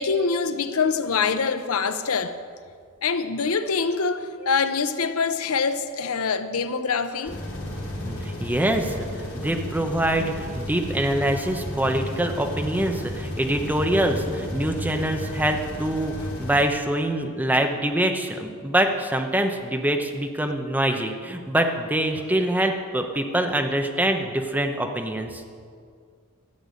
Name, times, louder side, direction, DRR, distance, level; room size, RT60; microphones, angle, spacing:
voice 1, 0.0-2.3 3.0-7.4, left 5 dB, 80° left, 0.7 m, -24 dB
sound 1, 7.2-16.6, left 1 dB, 60° left, 3.8 m, -33 dB
voice 2, 8.1-25.4, right 1 dB, 10° right, 0.9 m, -25 dB
13.0 x 7.0 x 8.3 m
head